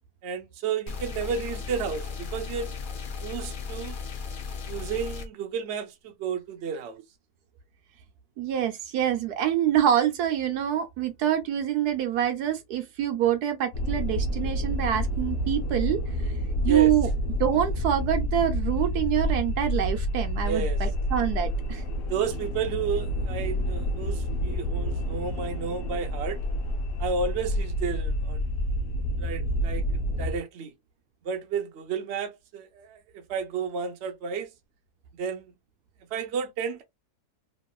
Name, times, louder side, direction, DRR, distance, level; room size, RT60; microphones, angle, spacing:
voice 1, 0.2-2.8 3.2-4.0 4.7-7.0 16.6-16.9 20.4-20.8 22.1-26.4 27.0-28.4 29.2-29.8 30.2-30.7 31.2-34.5 35.1-35.4 36.1-36.8, right 6 dB, 55° right, 0.8 m, -32 dB
sound 1, 0.9-5.3, left 5 dB, 80° left, 0.4 m, -36 dB
voice 2, 8.4-16.0 16.6-17.1 17.4-21.8, right 10 dB, 80° right, 1.2 m, -26 dB
sound 2, 13.7-30.4, equal, 60° left, 0.9 m, -29 dB
3.0 x 2.8 x 2.3 m
omnidirectional pair, 1.7 m